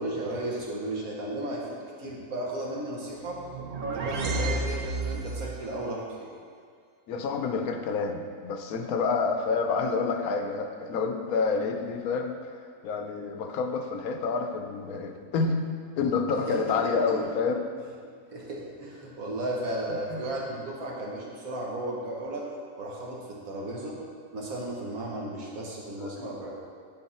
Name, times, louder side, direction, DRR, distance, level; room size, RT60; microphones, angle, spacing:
voice 1, 0.0-1.6 2.0-3.4 3.8-6.3 16.5-16.6 16.8-17.0 18.3-22.4 22.8-24.0 24.3-26.5, right 1 dB, 75° right, -3 dB, 1.8 m, -34 dB
sound 1, 3.3-5.6, right 2 dB, 60° right, 0.5 m, -31 dB
voice 2, 7.1-12.5 12.8-15.6 16.0-17.6 19.9-20.2, left 4 dB, 85° left, 5 dB, 1.2 m, -28 dB
11.0 x 4.2 x 4.2 m, 2.1 s
omnidirectional pair, 1.5 m